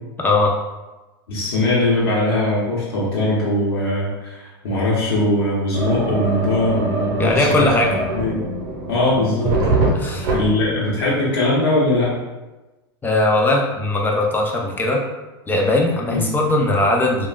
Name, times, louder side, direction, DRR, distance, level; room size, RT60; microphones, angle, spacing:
voice 1, 0.2-0.6 7.2-8.0 9.9-10.3 13.0-15.0 15.5-17.3, left 2 dB, 15° left, 0 dB, 0.5 m, -19 dB
voice 2, 1.3-8.4 8.9-9.6 10.3-12.1 16.1-16.2, left 1 dB, 80° left, -7 dB, 0.9 m, -20 dB
sound 1, 5.7-10.7, right 2 dB, 60° right, 0.8 m, -23 dB
3.3 x 2.3 x 2.3 m, 1.1 s
hypercardioid pair, 100°, 13 cm